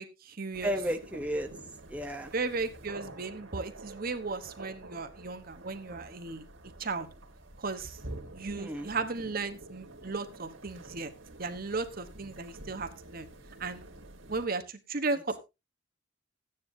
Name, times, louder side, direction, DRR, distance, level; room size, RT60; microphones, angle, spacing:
voice 1, 0.0-0.7 2.3-6.5 6.8-7.1 7.6-8.0 8.3-11.1 11.4-13.3 13.6-13.9 14.3-15.4, right 3 dB, 50° right, 9 dB, 1.1 m, -35 dB
sound 1, 0.5-14.5, right 2 dB, 85° right, 2.5 m, -48 dB
voice 2, 0.6-1.5 1.9-2.3 8.5-8.9, equal, 5° right, 4 dB, 0.9 m, -33 dB
14.5 x 9.7 x 2.7 m, 0.25 s
head